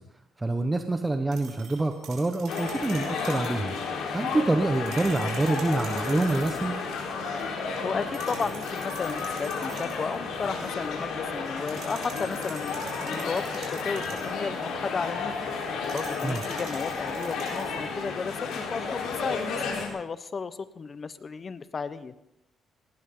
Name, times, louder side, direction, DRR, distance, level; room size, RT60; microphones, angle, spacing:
voice 1, 0.4-3.8 4.1-6.8 16.2-16.4, right 2 dB, 15° right, 6 dB, 1.2 m, -26 dB
sound 1, 1.3-3.6 4.7-6.7 8.1-10.1 11.7-14.4 15.8-17.8, right 6 dB, 85° right, 5.1 m, -46 dB
sound 2, 2.5-19.9, left 4 dB, 85° left, 4.2 m, -32 dB
sound 3, 6.7-17.1, right 2 dB, 35° right, 5.5 m, -53 dB
voice 2, 7.8-15.3 15.9-22.1, left 5 dB, 40° left, 14 dB, 1.0 m, -34 dB
18.5 x 18.0 x 3.9 m, 0.84 s
cardioid pair, 90°, 0 cm